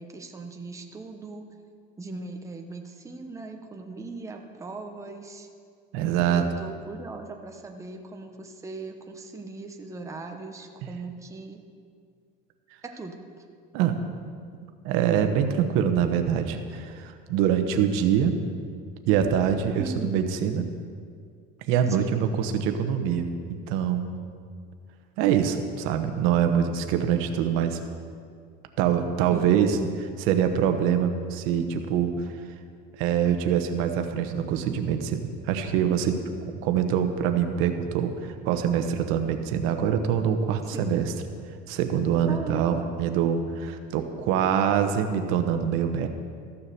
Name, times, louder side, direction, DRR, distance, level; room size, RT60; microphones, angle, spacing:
voice 1, 0.0-1.5 2.0-5.5 6.2-11.6 12.8-13.4 19.8-20.1 22.0-22.2 29.3-29.9 40.7-41.0 42.3-42.9, right 3 dB, 15° right, 3 dB, 1.0 m, -38 dB
voice 2, 5.9-6.4 13.7-14.0 14.8-18.4 19.1-20.7 21.7-24.2 25.2-27.8 28.8-29.8 30.3-32.1 33.0-36.2 36.6-41.1 41.7-46.1, right 8 dB, 75° right, 6 dB, 1.1 m, -24 dB
14.0 x 7.2 x 6.8 m, 2.1 s
cardioid pair, 140°, 21 cm